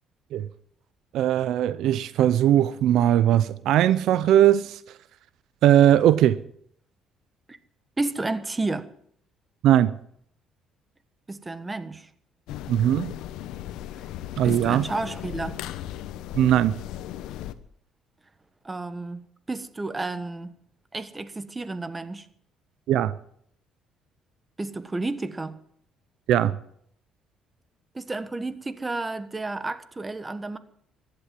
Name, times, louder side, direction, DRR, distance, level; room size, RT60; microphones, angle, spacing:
voice 1, 1.1-4.8 5.6-6.4 9.6-9.9 12.7-13.1 14.4-14.9 16.3-16.8 22.9-23.1 26.3-26.5, right 11 dB, 75° right, 0.6 m, -19 dB
voice 2, 8.0-8.9 11.3-12.1 14.4-15.6 18.6-20.5 20.9-22.3 24.6-25.6 27.9-30.6, right 2 dB, 20° right, 1.3 m, -31 dB
sound 1, 12.5-17.5, left 12 dB, 80° left, 1.0 m, -36 dB
15.0 x 11.5 x 7.5 m
cardioid pair, 95°, 0 cm